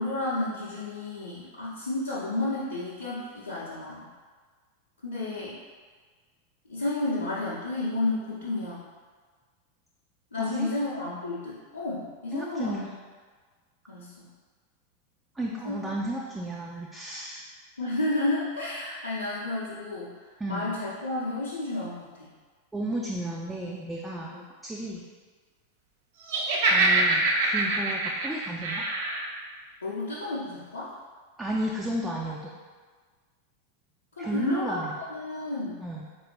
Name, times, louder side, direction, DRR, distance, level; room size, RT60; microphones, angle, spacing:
voice 1, 0.0-4.1 5.0-5.6 6.7-8.8 10.3-12.8 13.9-14.3 15.6-15.8 17.8-20.1 20.5-22.3 24.3-24.4 29.8-30.9 34.2-35.8, left 2 dB, 80° left, -11 dB, 0.7 m, -31 dB
voice 2, 10.4-10.7 12.3-12.9 15.4-17.4 20.4-20.7 22.7-24.3 24.6-25.1 26.7-28.8 31.4-32.5 34.2-34.9 35.8-36.1, right 1 dB, 10° right, -3 dB, 0.4 m, -33 dB
Laughter, 26.3-29.3, right 2 dB, 55° right, 0.6 m, -24 dB
4.0 x 2.7 x 3.1 m, 1.5 s
figure-of-eight pair, 90°, 0 cm